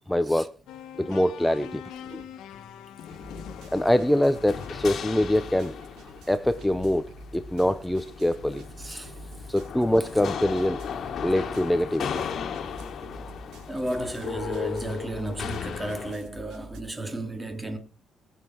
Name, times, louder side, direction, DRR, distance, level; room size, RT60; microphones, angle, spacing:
voice 1, 0.1-0.5 1.0-1.8 2.1-2.2 3.7-5.8 6.3-8.6 9.5-10.8 11.2-12.2, left 1 dB, 5° left, 0.9 m, -24 dB
sound 1, 0.7-5.7, left 10 dB, 90° left, 1.4 m, -44 dB
sound 2, 1.1-1.3 1.6-16.8, right 1 dB, 90° right, 3.9 m, -46 dB
sound 3, 3.1-16.2, left 7 dB, 65° left, 1.8 m, -37 dB
voice 2, 8.8-9.1 13.7-17.8, right 1 dB, 15° right, 3.2 m, -33 dB
21.5 x 7.4 x 4.6 m
cardioid pair, 90°, 0 cm